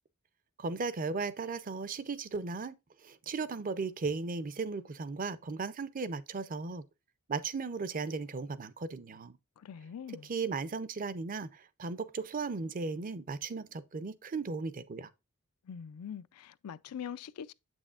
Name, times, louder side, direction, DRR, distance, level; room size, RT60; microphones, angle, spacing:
voice 1, 0.6-2.8 3.0-6.8 7.3-9.4 10.3-15.1, right 4 dB, 40° right, 0.5 m, -36 dB
voice 2, 9.6-10.3 15.6-17.5, left 8 dB, 90° left, 0.4 m, -43 dB
7.9 x 6.2 x 2.3 m
head